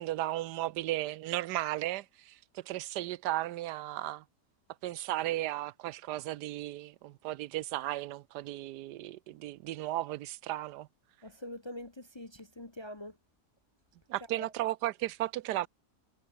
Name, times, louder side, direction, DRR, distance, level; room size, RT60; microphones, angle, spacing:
voice 1, 0.0-4.2 4.8-10.9 14.1-15.7, right 15 dB, 85° right, 1.2 m, -35 dB
voice 2, 11.2-13.2 14.4-14.5, left 1 dB, 20° left, 0.7 m, -44 dB
omnidirectional pair, 1.8 m